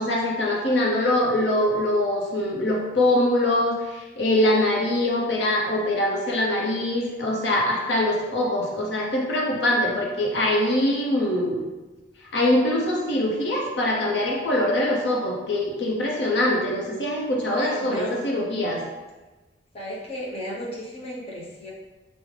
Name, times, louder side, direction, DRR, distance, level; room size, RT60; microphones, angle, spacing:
voice 1, 0.0-11.6 12.3-18.9, left 1 dB, 70° left, -2 dB, 0.7 m, -23 dB
voice 2, 17.5-18.3 19.7-21.7, equal, 35° left, -5 dB, 0.7 m, -34 dB
4.9 x 2.1 x 3.2 m, 1.2 s
head